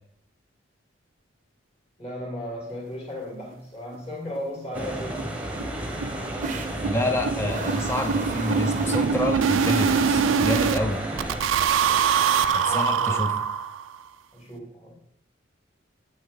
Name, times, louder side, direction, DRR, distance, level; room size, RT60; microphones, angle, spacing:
voice 1, 2.0-5.2 10.6-11.0 12.6-13.3 14.3-15.0, left 1 dB, 35° left, -2 dB, 2.6 m, -36 dB
sound 1, 3.9-4.0 4.3-4.4 4.8-4.9 5.2-5.3 5.6-10.8 11.2-14.0, right 6 dB, 90° right, 0.4 m, -24 dB
sound 2, 4.7-11.4, right 1 dB, 5° right, 1.0 m, -32 dB
sound 3, 6.4-6.8 7.5-9.3 9.8-10.2 11.9-13.1, right 5 dB, 40° right, 0.6 m, -37 dB
voice 2, 6.8-11.0 12.5-13.4, left 1 dB, 15° left, 5 dB, 0.5 m, -28 dB
8.3 x 6.1 x 3.8 m, 0.66 s
head